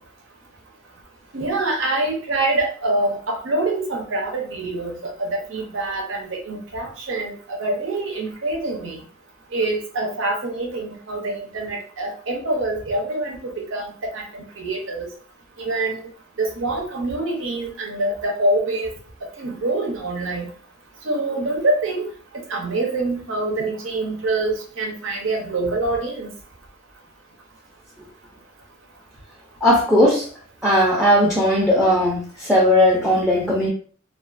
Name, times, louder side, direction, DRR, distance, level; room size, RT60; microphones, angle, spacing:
voice 1, 1.3-9.0 9.5-15.1 15.6-16.1 16.4-18.9 19.4-20.5 21.0-22.1 22.5-26.3, right 2 dB, 75° right, 1 dB, 0.7 m, -25 dB
voice 2, 29.6-30.3 30.6-33.7, left 1 dB, ahead, -4 dB, 0.5 m, -17 dB
2.4 x 2.4 x 2.5 m, 0.43 s
head